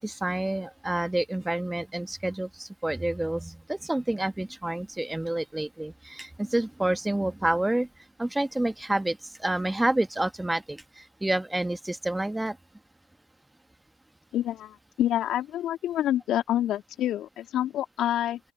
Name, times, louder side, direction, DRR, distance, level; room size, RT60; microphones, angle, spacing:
voice 1, 0.0-7.9 8.2-12.6, right 1 dB, 10° right, 1.4 m, -29 dB
voice 2, 14.3-18.4, left 12 dB, 55° left, 2.8 m, -27 dB
open air
hypercardioid pair, 75°, 0 cm